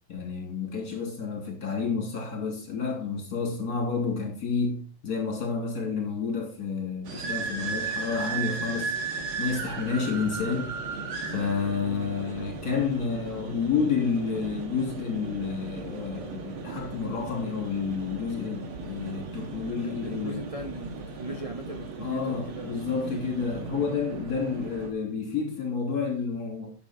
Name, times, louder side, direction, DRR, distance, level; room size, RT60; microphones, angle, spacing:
voice 1, 0.1-8.9 9.4-10.7 11.3-20.4 22.0-26.7, left 5 dB, 45° left, 3.5 m, -30 dB
sound 1, 7.0-24.9, right 4 dB, 70° right, 2.4 m, -36 dB
voice 2, 19.8-23.2, right 2 dB, 35° right, 0.5 m, -39 dB
10.0 x 7.5 x 4.5 m
omnidirectional pair, 2.4 m